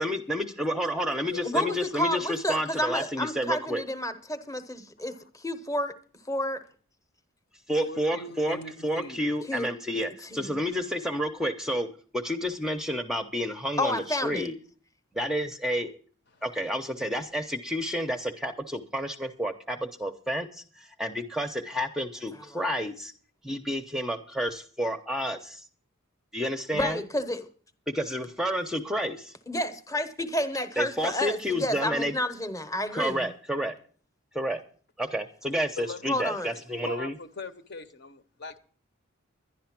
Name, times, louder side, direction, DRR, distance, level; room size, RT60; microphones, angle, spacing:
voice 1, 0.0-3.8 7.7-11.9 12.1-14.6 15.1-15.9 16.4-23.1 23.4-25.6 26.3-27.0 27.9-29.3 30.8-32.2 32.9-33.7 34.3-34.6 35.0-37.1, equal, 5° right, 0.7 m, -30 dB
voice 2, 0.8-1.7 5.1-5.2 7.8-9.2 9.6-9.7 16.3-16.4 35.8-36.2 36.6-38.6, left 2 dB, 50° left, 1.0 m, -41 dB
voice 3, 1.4-5.9 6.3-6.6 9.5-9.7 10.3-10.6 13.8-14.5 26.7-27.5 29.5-33.3 36.1-36.5, left 1 dB, 15° left, 1.0 m, -30 dB
11.0 x 11.0 x 6.0 m
head